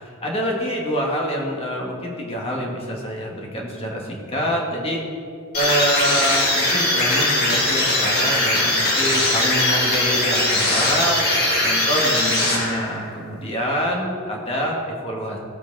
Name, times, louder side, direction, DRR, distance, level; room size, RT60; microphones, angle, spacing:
voice 1, 0.2-5.0 5.5-11.2 11.6-15.4, equal, 30° left, -1 dB, 2.1 m, -26 dB
sound 1, 5.5-13.1, left 1 dB, 50° left, 2.6 m, -20 dB
17.0 x 8.2 x 4.1 m, 2.3 s
head